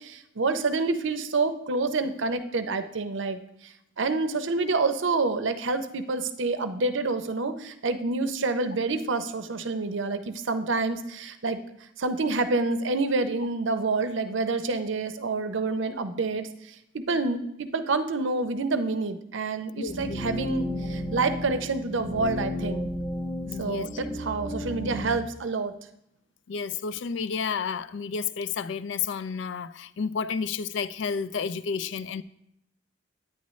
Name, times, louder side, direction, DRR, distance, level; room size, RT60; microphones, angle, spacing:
voice 1, 0.0-11.6 12.0-22.9 23.6-25.7, right 3 dB, 65° right, 0.6 m, -28 dB
voice 2, 19.8-20.2 23.5-23.9 26.5-32.2, left 6 dB, 60° left, 0.3 m, -31 dB
sound 1, 19.9-25.2, left 1 dB, 25° left, 0.6 m, -33 dB
9.5 x 9.2 x 3.1 m
head